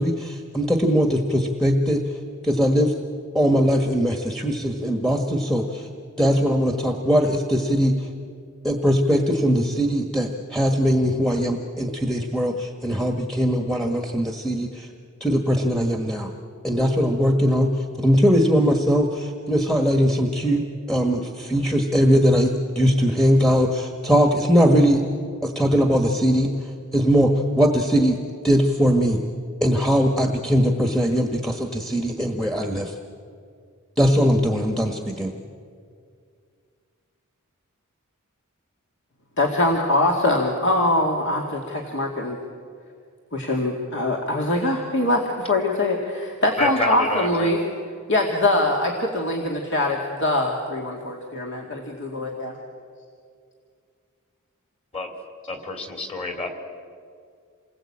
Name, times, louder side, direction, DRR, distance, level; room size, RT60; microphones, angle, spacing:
voice 1, 0.0-2.0 2.4-2.9 3.3-5.9 6.2-7.9 8.6-14.9 15.2-16.3 16.6-17.7 18.0-25.0 25.4-26.5 26.9-28.2 28.4-29.2 29.6-32.9 34.0-35.3, equal, ahead, 3 dB, 1.4 m, -20 dB
voice 2, 39.4-42.4 43.3-47.6 48.1-52.5, left 1 dB, 60° left, 0 dB, 2.4 m, -23 dB
voice 3, 46.6-47.5 54.9-55.1 55.5-56.5, left 2 dB, 30° left, 5 dB, 3.1 m, -28 dB
28.0 x 20.5 x 8.7 m, 2.3 s
head